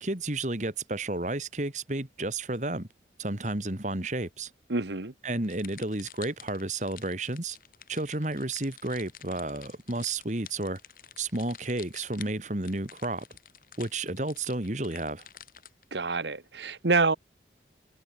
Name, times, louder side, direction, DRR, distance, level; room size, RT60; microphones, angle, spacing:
voice 1, 0.0-2.9 3.2-4.5 5.2-7.6 7.9-10.8 11.2-13.3 13.8-15.2, right 2 dB, 45° right, 2.2 m, -32 dB
voice 2, 4.7-5.1 15.9-17.2, right 3 dB, 80° right, 1.4 m, -26 dB
sound 1, 5.4-15.8, left 10 dB, 50° left, 6.6 m, -49 dB
head